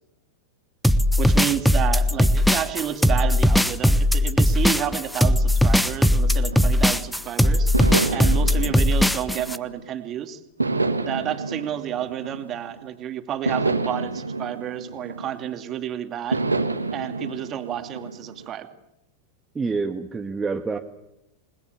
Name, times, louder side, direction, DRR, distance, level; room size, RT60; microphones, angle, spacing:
sound 1, 0.8-9.6, left 1 dB, ahead, 1.1 m, -19 dB
voice 1, 1.2-7.7 8.1-10.4 11.0-16.4 16.9-18.7, right 10 dB, 30° right, 7 dB, 2.6 m, -30 dB
sound 2, 6.0-7.1 7.7-10.0 10.6-12.9 13.5-15.7 16.3-18.5, right 3 dB, 80° right, 1.9 m, -29 dB
voice 2, 19.6-20.8, right 4 dB, 15° right, 4 dB, 1.6 m, -27 dB
29.0 x 21.0 x 7.1 m, 0.85 s
figure-of-eight pair, 90°, 0 cm